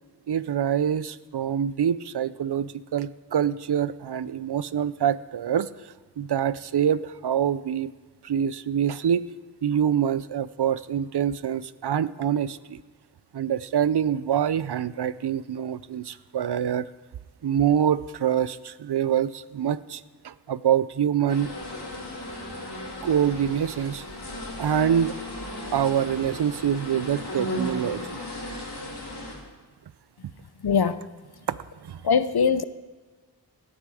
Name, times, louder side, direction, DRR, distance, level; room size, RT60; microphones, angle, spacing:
voice 1, 0.3-5.7 6.2-7.9 8.2-9.2 9.6-12.8 13.3-16.9 17.4-21.5 23.0-24.0 24.6-25.2 25.7-28.2 31.5-32.0, right 9 dB, 85° right, 0.5 m, -25 dB
sound 1, 21.3-29.3, left 1 dB, 90° left, 2.6 m, -36 dB
voice 2, 30.6-31.0 32.0-32.6, left 6 dB, 70° left, 0.6 m, -21 dB
17.5 x 9.8 x 4.8 m
wide cardioid pair, 55°, 39 cm